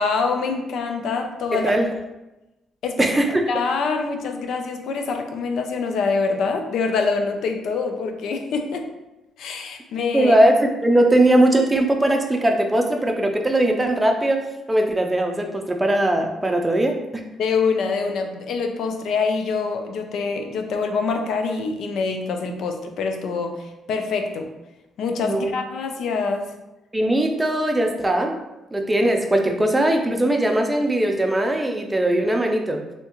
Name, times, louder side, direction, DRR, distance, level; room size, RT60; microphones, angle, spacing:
voice 1, 0.0-1.7 2.8-3.1 3.5-8.9 9.4-10.4 17.4-24.5 25.0-26.5, left 4 dB, 75° left, 5 dB, 0.4 m, -25 dB
voice 2, 1.5-1.9 3.0-3.4 10.1-17.0 25.2-25.5 26.9-28.4 28.7-32.8, right 1 dB, 15° right, 3 dB, 0.5 m, -20 dB
3.2 x 2.8 x 3.0 m, 0.98 s
cardioid pair, 90°, 0 cm